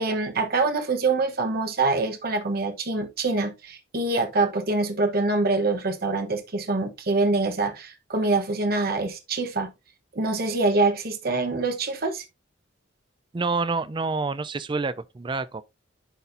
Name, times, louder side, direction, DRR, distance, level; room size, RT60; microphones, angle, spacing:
voice 1, 0.0-9.7 10.1-12.2, right 3 dB, 55° right, 1.0 m, -25 dB
voice 2, 13.3-15.6, right 4 dB, 25° right, 0.4 m, -27 dB
11.0 x 4.2 x 2.6 m
head